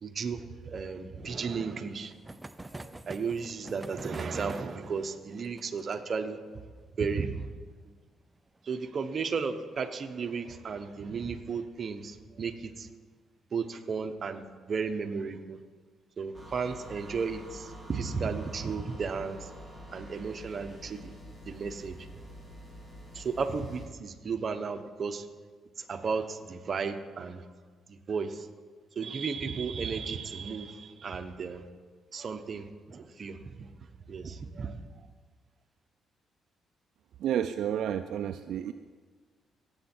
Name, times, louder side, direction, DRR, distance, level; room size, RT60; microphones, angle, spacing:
voice 1, 0.0-2.1 2.7-6.4 7.0-7.4 8.6-12.9 13.5-15.6 16.2-19.5 19.9-21.1 21.5-22.0 23.1-25.3 25.8-27.4 28.1-28.5 29.0-31.6 32.1-33.5 34.1-34.8, right 5 dB, 45° right, 7 dB, 0.9 m, -34 dB
sound 1, 1.2-10.4 10.7-10.8 11.0-11.1 11.4-11.5 12.9-13.2 13.8-14.3, right 2 dB, 15° right, 0.5 m, -48 dB
sound 2, 16.3-23.9, equal, 10° left, 2.9 m, -47 dB
voice 2, 37.2-38.7, right 10 dB, 75° right, 8 dB, 0.4 m, -30 dB
17.5 x 8.0 x 4.4 m, 1.5 s
cardioid pair, 90°, 0 cm